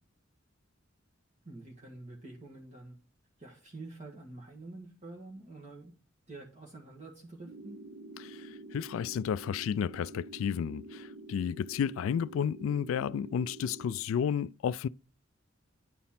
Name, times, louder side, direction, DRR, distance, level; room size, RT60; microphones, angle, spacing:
voice 1, 1.4-3.0 3.4-5.9 6.3-7.8, right 2 dB, 35° right, 1.7 m, -47 dB
sound 1, 7.4-14.0, right 2 dB, 60° right, 0.8 m, -47 dB
voice 2, 8.2-14.9, left 8 dB, 85° left, 0.3 m, -32 dB
10.0 x 4.2 x 5.7 m
head